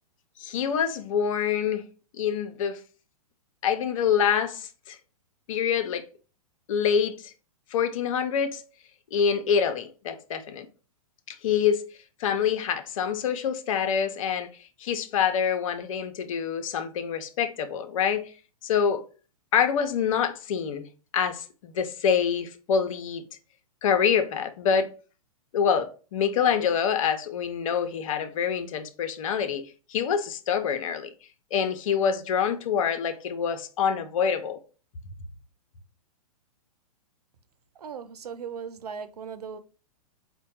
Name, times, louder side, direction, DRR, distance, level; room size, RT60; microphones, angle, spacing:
voice 1, 0.4-1.9 2.2-2.8 3.6-5.0 5.5-6.1 6.7-7.3 7.7-8.6 9.1-10.7 11.3-11.8 12.2-14.5 14.8-18.3 18.6-19.0 19.5-23.2 23.8-24.9 25.5-31.1 31.5-34.6, left 7 dB, 60° left, 0.7 m, -26 dB
voice 2, 37.8-39.6, right 6 dB, 85° right, 0.5 m, -38 dB
4.4 x 2.2 x 4.2 m
hypercardioid pair, 120°, 19 cm